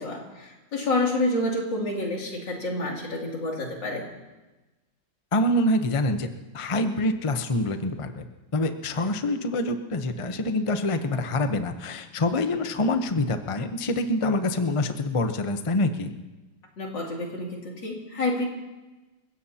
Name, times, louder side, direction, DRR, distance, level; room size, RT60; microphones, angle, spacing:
voice 1, 0.0-4.1 16.8-18.5, left 2 dB, 65° left, -2 dB, 3.5 m, -28 dB
voice 2, 5.3-6.3 6.5-8.3 8.5-16.1, left 1 dB, 40° left, 7 dB, 0.4 m, -26 dB
28.5 x 16.0 x 2.9 m, 1.1 s
omnidirectional pair, 2.1 m